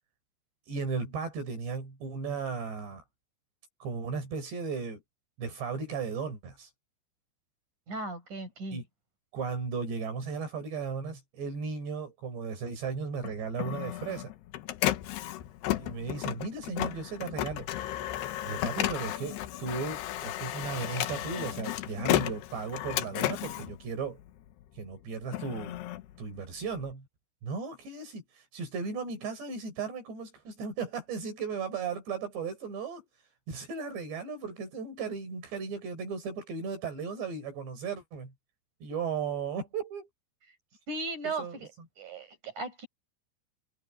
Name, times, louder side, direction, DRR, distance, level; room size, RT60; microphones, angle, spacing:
voice 1, 0.7-3.0 3.8-5.0 5.4-6.7 8.7-8.8 9.3-14.3 15.8-17.7 18.4-24.2 24.8-25.8 26.2-27.1 27.4-33.0 33.5-38.3 38.8-40.1 41.4-41.6, right 5 dB, 75° right, 6.9 m, -36 dB
voice 2, 7.9-8.8 40.9-41.7 42.0-42.9, right 3 dB, 45° right, 9.3 m, -37 dB
Printer, 13.2-24.6 25.1-26.9, left 14 dB, 75° left, 3.0 m, -33 dB
omnidirectional pair, 5.0 m